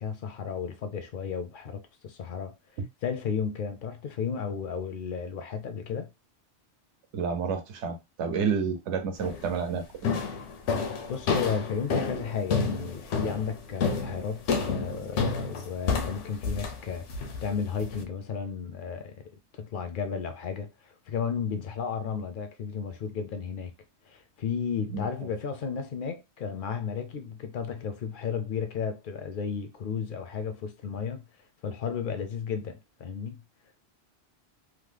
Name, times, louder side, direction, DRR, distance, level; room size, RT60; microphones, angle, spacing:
voice 1, 0.0-2.5 3.0-6.1 11.1-19.2 19.5-23.7 24.1-31.2 31.6-33.4, left 6 dB, 60° left, 0.6 m, -33 dB
voice 2, 7.1-10.2 24.9-25.1, right 6 dB, 75° right, 0.9 m, -30 dB
sound 1, 9.2-9.5 10.0-18.0, left 5 dB, 85° left, 0.9 m, -30 dB
2.9 x 2.0 x 3.2 m
omnidirectional pair, 1.2 m